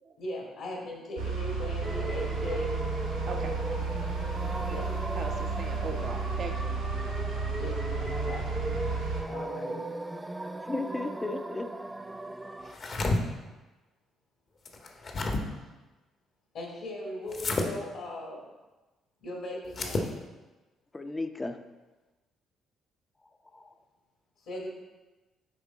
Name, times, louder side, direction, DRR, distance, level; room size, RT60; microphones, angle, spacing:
voice 1, 0.2-2.8 4.7-4.9 7.5-8.5 9.3-9.8 16.5-18.4 19.2-20.1 24.4-24.7, left 1 dB, 70° left, -2 dB, 1.9 m, -38 dB
sound 1, 1.2-9.2, right 4 dB, 90° right, 1.2 m, -32 dB
sound 2, 1.8-12.7, right 1 dB, 15° right, 0.4 m, -37 dB
voice 2, 3.3-3.6 4.6-4.8 5.1-6.7, right 4 dB, 50° right, 4 dB, 0.8 m, -39 dB
voice 3, 10.7-11.7 20.9-21.6 23.5-23.7, left 2 dB, 20° left, 7 dB, 0.7 m, -34 dB
sound 3, 12.6-13.2 14.7-15.4 17.3-17.7 19.7-20.1, left 2 dB, 45° left, 1.1 m, -30 dB
9.6 x 3.7 x 3.9 m, 1.2 s
hypercardioid pair, 50°, 0 cm